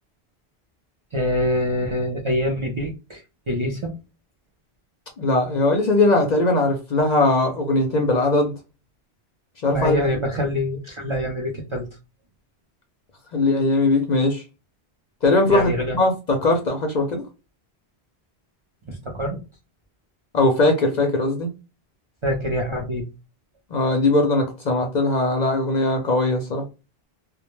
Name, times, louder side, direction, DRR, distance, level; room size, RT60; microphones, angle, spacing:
voice 1, 1.1-3.2 3.5-3.9 9.7-11.9 15.5-16.0 18.9-19.4 22.2-23.1, left 1 dB, 40° right, 0.5 m, -25 dB
voice 2, 5.2-8.5 9.6-10.0 13.3-14.4 15.2-17.3 20.3-21.5 23.7-26.7, left 2 dB, 55° left, 0.6 m, -20 dB
2.2 x 2.1 x 2.9 m
omnidirectional pair, 1.1 m